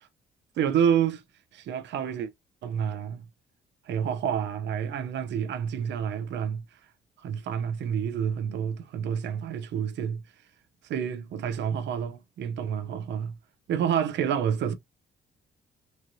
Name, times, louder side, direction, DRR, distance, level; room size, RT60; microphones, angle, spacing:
voice 1, 0.6-1.2 1.5-2.3 2.6-3.2 3.9-6.6 7.2-10.2 10.8-13.4 13.7-14.7, right 8 dB, 65° right, 0.5 m, -28 dB
3.0 x 2.6 x 2.5 m
cardioid pair, 90°, 20 cm